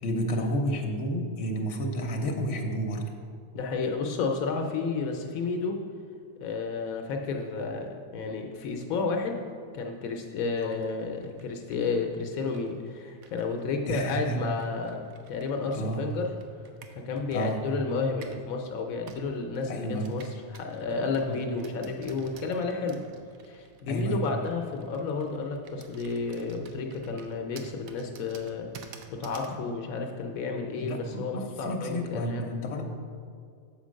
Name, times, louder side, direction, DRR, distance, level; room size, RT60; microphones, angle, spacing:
voice 1, 0.0-3.1 10.6-10.7 13.9-14.4 15.7-16.0 17.3-17.7 19.7-20.2 21.2-21.4 23.9-24.2 29.5-29.6 30.8-32.8, equal, 65° left, 2 dB, 1.2 m, -31 dB
voice 2, 3.5-5.8 6.4-9.4 9.7-16.3 16.9-23.0 23.5-32.4, left 4 dB, 85° left, 3 dB, 1.1 m, -31 dB
Computer keyboard, 10.6-18.5 19.1-29.6, right 5 dB, 90° right, 1.1 m, -51 dB
7.5 x 4.5 x 6.2 m, 2.2 s
omnidirectional pair, 1.4 m